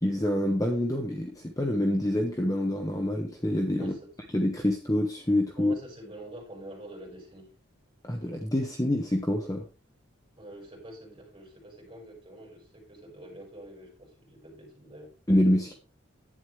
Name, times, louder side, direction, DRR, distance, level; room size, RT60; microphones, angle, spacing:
voice 1, 0.0-3.9 4.3-5.7 8.0-9.6 15.3-15.7, left 1 dB, 15° left, 1.1 m, -26 dB
voice 2, 3.7-4.1 5.6-7.5 10.4-15.1, right 1 dB, 25° right, 5.4 m, -46 dB
11.0 x 9.5 x 3.3 m
head